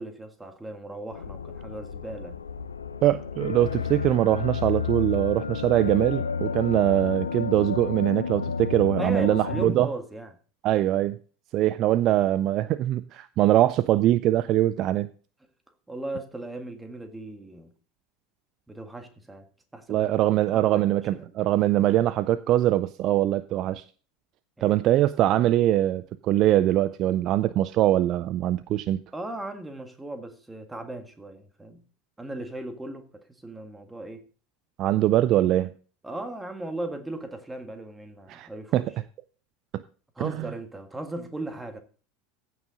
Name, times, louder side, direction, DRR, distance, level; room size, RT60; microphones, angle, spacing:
voice 1, 0.0-2.4 9.0-10.3 15.9-17.7 18.7-19.5 19.7-20.1 20.5-20.8 21.1-21.3 24.6-24.8 29.1-31.8 32.2-33.1 33.4-34.2 36.0-38.8 40.2-41.8, right 2 dB, 10° right, 1.7 m, -37 dB
sound 1, 1.1-9.7, left 6 dB, 80° left, 0.6 m, -31 dB
voice 2, 3.0-9.9 10.6-11.2 11.5-15.1 19.9-23.8 24.6-29.0 34.8-35.8 38.3-38.8 39.7-39.8 40.2-40.5, right 13 dB, 45° right, 0.4 m, -23 dB
15.0 x 6.2 x 3.9 m
figure-of-eight pair, 75°, 0 cm